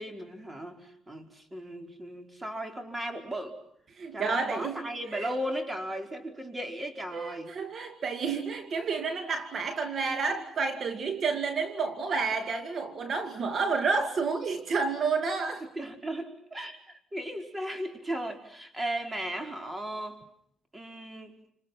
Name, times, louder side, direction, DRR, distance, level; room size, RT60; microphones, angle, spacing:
voice 1, 0.0-3.6 4.1-7.5 10.0-10.4 15.6-16.8 17.1-20.2 20.7-21.4, right 1 dB, 20° right, 4.9 m, -36 dB
voice 2, 3.9-4.8 5.1-5.3 7.1-15.6, right 4 dB, 55° right, 2.3 m, -30 dB
29.5 x 27.5 x 6.0 m
cardioid pair, 90°, 0 cm